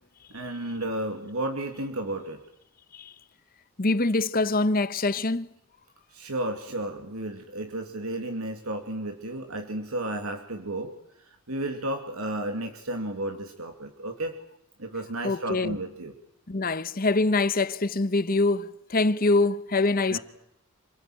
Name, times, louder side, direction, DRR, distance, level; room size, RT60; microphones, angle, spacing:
voice 1, 0.3-2.4 6.1-10.9 11.2-14.3 14.8-16.1 20.1-20.2, right 1 dB, 80° right, 2.6 m, -33 dB
voice 2, 3.8-5.5 15.2-15.8 16.5-20.2, left 3 dB, 40° left, 1.0 m, -24 dB
27.5 x 18.5 x 9.2 m
head